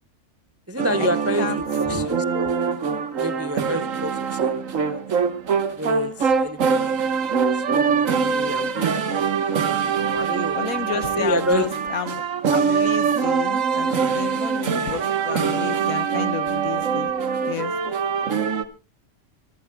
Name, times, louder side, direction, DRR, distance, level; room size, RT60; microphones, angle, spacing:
voice 1, 0.7-2.5 3.2-4.5 4.9-5.0 5.8-6.7 7.7-9.0 9.3-10.6 11.2-11.9, equal, 25° right, 0.3 m, -28 dB
sound 1, 0.8-18.6, right 6 dB, 65° right, 1.6 m, -23 dB
voice 2, 1.4-2.1 10.5-12.2 12.5-17.1 17.4-17.7, left 8 dB, 80° left, 1.5 m, -31 dB
25.5 x 17.0 x 2.3 m
omnidirectional pair, 1.5 m